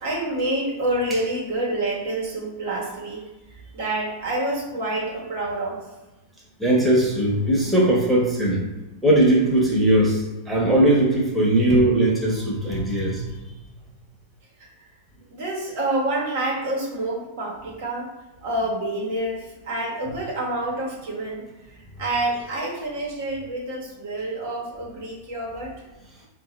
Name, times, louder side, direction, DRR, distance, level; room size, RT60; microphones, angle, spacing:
voice 1, 0.0-3.2 3.5-5.8 14.6-14.9 15.3-18.1 18.4-25.7, right 1 dB, 65° right, -4 dB, 1.2 m, -28 dB
voice 2, 6.6-8.6 9.0-13.3, right 1 dB, 5° right, -5 dB, 1.0 m, -19 dB
3.7 x 2.5 x 3.1 m, 1.1 s
hypercardioid pair, 105°, 0 cm